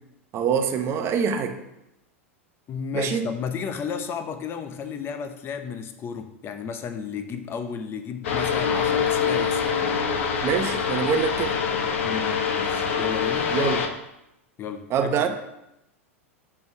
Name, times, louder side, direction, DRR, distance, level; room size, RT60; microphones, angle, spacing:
voice 1, 0.3-1.6 2.9-3.3 10.4-11.6 13.5-13.8 14.9-15.3, right 7 dB, 35° right, 7 dB, 0.9 m, -24 dB
voice 2, 2.7-9.6 12.0-13.5 14.6-15.3, left 6 dB, 30° left, 8 dB, 0.8 m, -33 dB
sound 1, 8.2-13.9, left 6 dB, 65° left, 0.9 m, -25 dB
5.3 x 4.8 x 6.3 m, 0.87 s
hypercardioid pair, 95°, 7 cm